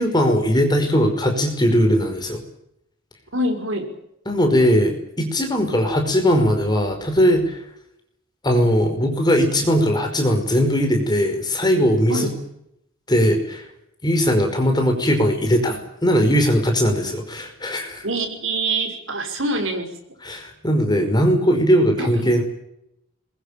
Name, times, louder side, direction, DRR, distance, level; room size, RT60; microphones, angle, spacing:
voice 1, 0.0-2.4 4.3-7.6 8.4-12.3 13.1-13.6 14.0-18.1 20.2-22.4, equal, 20° left, 5 dB, 5.2 m, -19 dB
voice 2, 3.3-3.9 12.1-12.3 18.0-19.9 22.0-22.2, right 2 dB, 70° right, 5 dB, 5.8 m, -25 dB
22.0 x 22.0 x 8.8 m, 0.78 s
head